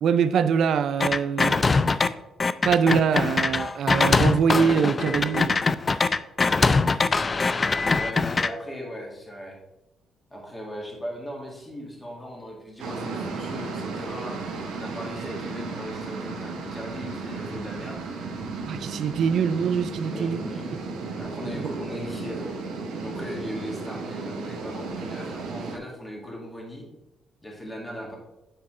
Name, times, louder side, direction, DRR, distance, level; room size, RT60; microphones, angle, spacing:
voice 1, 0.0-1.6 2.6-5.6 18.7-20.4 21.5-21.7, right 6 dB, 65° right, 12 dB, 0.4 m, -23 dB
sound 1, 1.0-2.1 2.4-8.5, left 4 dB, 30° left, 0.3 m, -22 dB
voice 2, 7.9-9.6 10.3-14.4 14.8-18.0 20.1-20.9 21.2-22.6 23.0-26.8 27.4-28.2, equal, 15° left, -1 dB, 2.1 m, -38 dB
sound 2, 12.8-25.8, right 4 dB, 90° right, 1.2 m, -34 dB
9.1 x 4.1 x 3.7 m, 0.92 s
cardioid pair, 90°, 0 cm